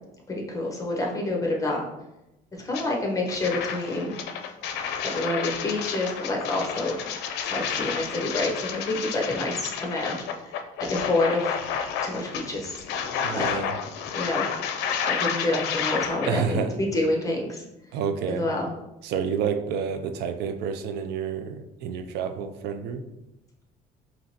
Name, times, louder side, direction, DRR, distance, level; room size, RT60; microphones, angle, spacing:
voice 1, 0.3-1.9 2.6-4.2 5.0-7.0 7.4-10.2 10.9-11.6 12.0-12.8 13.3-13.6 14.1-14.5 15.0-17.6 18.3-18.7, left 2 dB, 20° left, -1 dB, 1.1 m, -28 dB
sound 1, 2.7-2.8 3.3-16.3, left 7 dB, 85° left, 0.5 m, -31 dB
voice 2, 13.2-13.7 16.2-16.7 17.9-18.5 19.0-23.0, right 6 dB, 80° right, 8 dB, 0.4 m, -29 dB
4.9 x 2.9 x 2.9 m, 0.93 s
cardioid pair, 110°, 17 cm